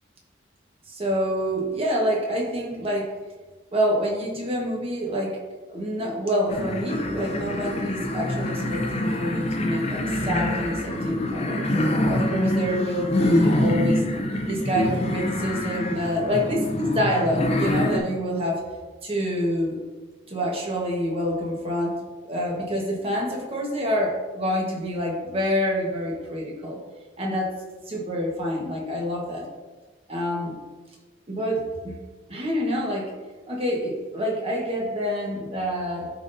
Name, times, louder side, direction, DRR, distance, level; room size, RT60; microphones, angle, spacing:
voice 1, 0.9-3.1 3.7-5.4 5.7-11.7 12.0-14.0 14.5-18.6 19.0-19.8 20.3-22.0 22.2-26.8 27.2-27.5 27.9-29.5 30.1-30.6 31.3-32.0 32.3-33.1 33.5-36.1, equal, 35° right, -1 dB, 1.3 m, -27 dB
sound 1, 6.5-18.0, left 1 dB, 35° left, 0.7 m, -25 dB
11.5 x 3.9 x 2.7 m, 1.3 s
head